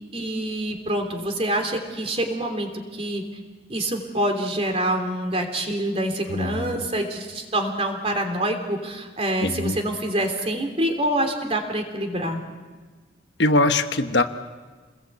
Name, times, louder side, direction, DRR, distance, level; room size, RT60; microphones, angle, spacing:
voice 1, 0.1-3.2 3.7-12.4, right 1 dB, 30° right, 5 dB, 3.3 m, -26 dB
voice 2, 6.3-6.8 9.4-9.8 13.4-14.2, left 2 dB, 60° left, 8 dB, 1.2 m, -22 dB
29.0 x 21.0 x 8.2 m, 1.4 s
head